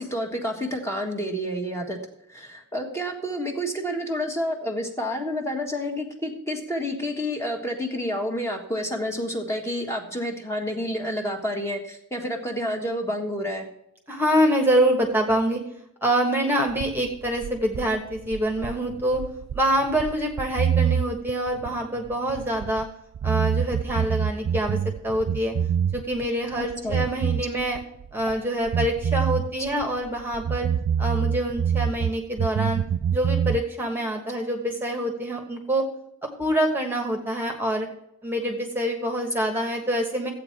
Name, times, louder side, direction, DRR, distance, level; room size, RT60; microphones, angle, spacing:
voice 1, 0.0-2.0 2.3-13.6 26.6-27.0, equal, 15° left, 2 dB, 1.5 m, -29 dB
voice 2, 14.1-15.6 16.0-19.2 19.5-22.9 23.2-24.8 25.0-25.5 25.9-27.8 28.1-30.7 31.0-32.8 33.1-35.8 36.4-37.9 38.2-40.3, right 1 dB, 10° right, 2 dB, 1.3 m, -25 dB
sound 1, 16.7-22.9 23.1-26.3 26.5-28.4 28.7-32.1 32.4-33.6, right 8 dB, 65° right, 0.3 m, -26 dB
13.5 x 8.3 x 4.5 m, 0.76 s
head